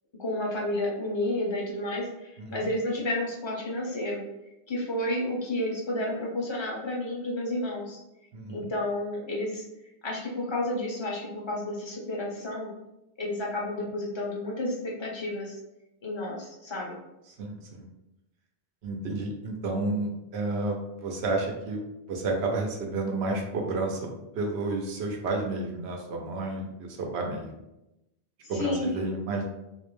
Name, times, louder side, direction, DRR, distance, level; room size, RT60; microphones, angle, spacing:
voice 1, 0.2-4.2 4.7-8.0 8.5-9.6 10.0-12.7 13.2-15.6 16.0-17.0 28.6-28.9, left 1 dB, 40° left, -3 dB, 0.4 m, -31 dB
voice 2, 2.4-2.7 8.3-8.7 17.3-17.9 18.8-21.8 22.1-27.5 28.5-29.4, right 2 dB, 90° right, 1 dB, 0.8 m, -31 dB
2.5 x 2.1 x 3.0 m, 0.91 s
omnidirectional pair, 1.1 m